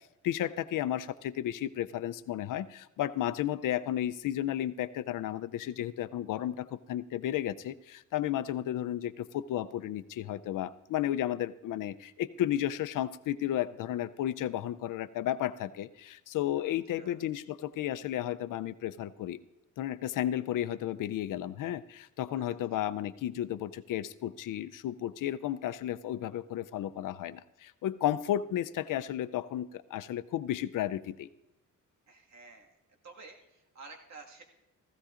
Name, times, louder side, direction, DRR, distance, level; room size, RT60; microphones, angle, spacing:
voice 1, 0.2-19.4 19.8-31.3, left 12 dB, 85° left, 15 dB, 0.5 m, -33 dB
voice 2, 16.6-17.2 22.4-22.6 32.1-32.8 33.0-34.4, right 3 dB, 60° right, 1 dB, 1.9 m, -52 dB
16.0 x 15.5 x 2.5 m, 0.93 s
cardioid pair, 120°, 31 cm